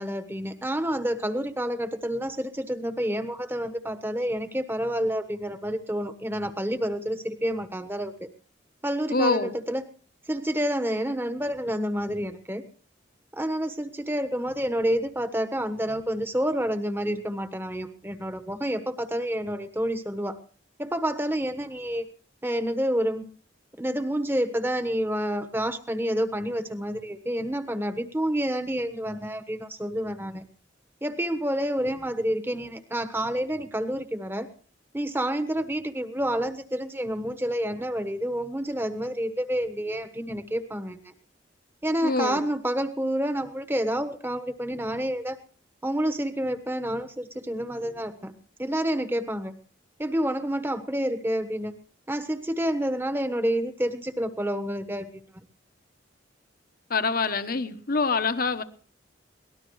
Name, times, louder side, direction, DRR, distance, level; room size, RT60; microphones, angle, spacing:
voice 1, 0.0-8.3 8.8-9.8 10.3-12.6 13.3-20.4 20.8-22.1 22.4-23.2 23.8-30.4 31.0-34.5 34.9-41.0 41.8-45.4 45.8-48.3 48.6-49.5 50.0-51.7 52.1-55.2, equal, 10° right, 9 dB, 1.2 m, -29 dB
voice 2, 9.1-9.5 42.0-42.5 56.9-58.6, left 3 dB, 50° left, 10 dB, 1.1 m, -25 dB
23.5 x 18.5 x 3.2 m, 0.42 s
head